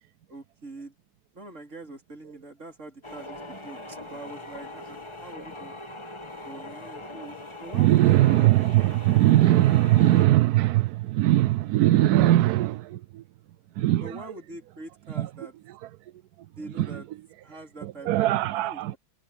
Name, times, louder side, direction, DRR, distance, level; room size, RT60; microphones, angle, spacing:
voice 1, 0.3-1.0 1.3-5.7 6.4-8.2 14.0-15.5 16.5-17.1 17.4-19.0, right 2 dB, 45° right, 4.4 m, -44 dB
sound 1, 3.0-10.3, left 2 dB, 15° left, 1.9 m, -41 dB
voice 2, 7.7-13.2 13.8-14.2 15.2-15.3 16.8-16.9 17.8-18.9, right 15 dB, 75° right, 1.0 m, -20 dB
omnidirectional pair, 1.8 m